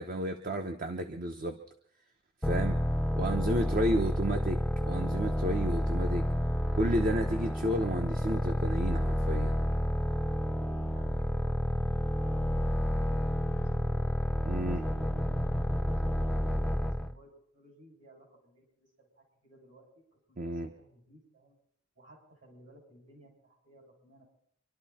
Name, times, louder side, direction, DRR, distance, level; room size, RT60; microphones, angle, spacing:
voice 1, 0.0-1.6 2.4-2.8 3.2-4.6 4.9-6.3 6.7-9.6 14.5-14.8 20.4-20.7, right 1 dB, 45° right, 5 dB, 1.0 m, -31 dB
sound 1, 2.4-17.1, equal, ahead, 0.6 m, -30 dB
voice 2, 10.4-14.2 14.6-15.5 15.9-21.6 21.9-24.2, equal, 65° right, 0 dB, 6.8 m, -58 dB
26.5 x 12.0 x 4.3 m, 0.66 s
head